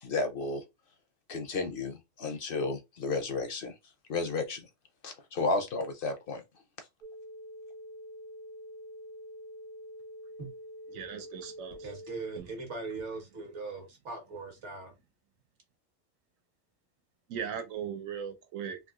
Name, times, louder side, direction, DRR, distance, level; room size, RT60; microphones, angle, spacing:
voice 1, 0.0-0.6 1.3-3.8 4.1-4.7 5.0-6.4, left 3 dB, 60° left, 0.6 m, -32 dB
sound 1, 7.0-12.4, equal, 45° right, 0.8 m, -46 dB
voice 2, 10.9-11.8 12.4-12.5 17.3-18.8, right 8 dB, 90° right, 1.1 m, -38 dB
voice 3, 11.8-14.9, right 3 dB, 65° right, 1.4 m, -40 dB
3.5 x 2.7 x 2.3 m
omnidirectional pair, 1.3 m